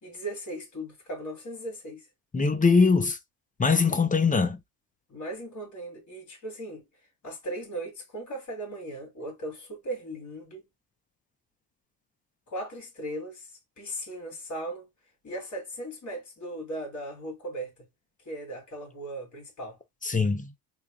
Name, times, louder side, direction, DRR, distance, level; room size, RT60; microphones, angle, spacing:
voice 1, 0.0-2.1 5.1-6.9 7.2-10.6 12.5-14.9 15.2-17.7 18.3-19.8, right 1 dB, 40° left, 2.7 m, -37 dB
voice 2, 2.3-3.2 3.6-4.6 20.0-20.5, left 4 dB, 20° left, 0.6 m, -22 dB
4.1 x 3.6 x 2.3 m
cardioid pair, 110°, 45 cm